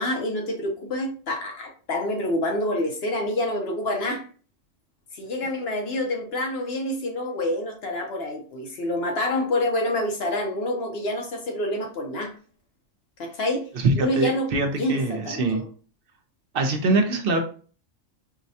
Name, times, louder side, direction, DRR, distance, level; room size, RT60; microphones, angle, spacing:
voice 1, 0.0-4.3 5.1-12.3 13.2-13.7 14.0-14.5 14.8-15.7, left 1 dB, 60° left, 2 dB, 0.9 m, -27 dB
voice 2, 13.7-15.6 16.5-17.4, right 3 dB, 55° right, 5 dB, 0.8 m, -23 dB
4.7 x 2.2 x 2.6 m, 0.40 s
omnidirectional pair, 1.3 m